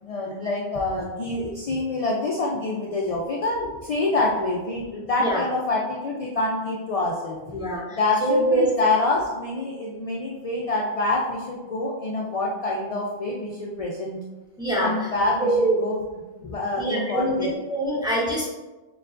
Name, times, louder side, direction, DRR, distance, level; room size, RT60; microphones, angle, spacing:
voice 1, 0.0-7.4 7.9-14.2 14.8-16.0 16.4-17.5, left 2 dB, 55° left, -3 dB, 0.4 m, -26 dB
voice 2, 7.5-8.7 14.6-15.1 15.4-15.8 16.8-18.5, right 1 dB, 5° right, -5 dB, 0.8 m, -24 dB
6.5 x 2.3 x 2.4 m, 1.2 s
omnidirectional pair, 1.2 m